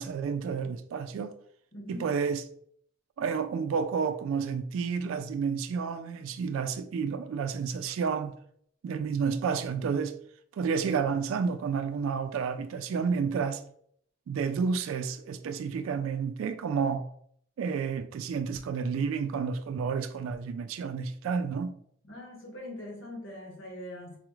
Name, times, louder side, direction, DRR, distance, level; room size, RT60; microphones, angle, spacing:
voice 1, 0.0-1.3 1.9-2.4 3.2-8.3 8.8-10.1 10.5-13.6 14.3-17.1 17.6-21.7, right 6 dB, 75° right, 0.3 m, -30 dB
voice 2, 1.7-2.1 22.0-24.2, left 1 dB, 90° left, 1.4 m, -42 dB
4.0 x 2.4 x 3.0 m
head